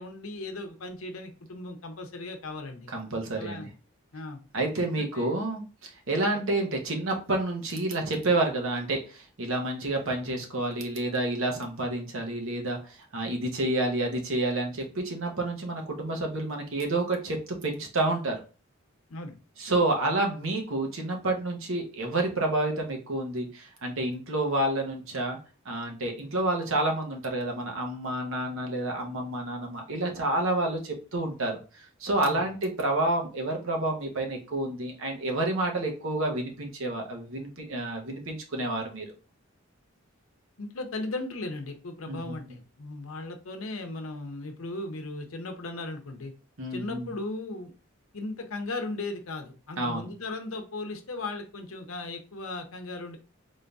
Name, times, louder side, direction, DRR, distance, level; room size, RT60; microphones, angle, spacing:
voice 1, 0.0-2.9 3.4-3.7 4.1-4.4 4.8-5.4 19.1-19.4 32.2-32.5 40.6-46.3 46.7-47.7 48.1-53.2, left 2 dB, 75° left, 6 dB, 0.7 m, -37 dB
voice 2, 2.9-3.7 4.5-18.4 19.6-25.4 25.6-39.0 42.1-42.3 46.6-47.1 49.8-50.1, right 2 dB, 70° right, 2 dB, 1.0 m, -29 dB
3.7 x 2.6 x 3.4 m, 0.35 s
head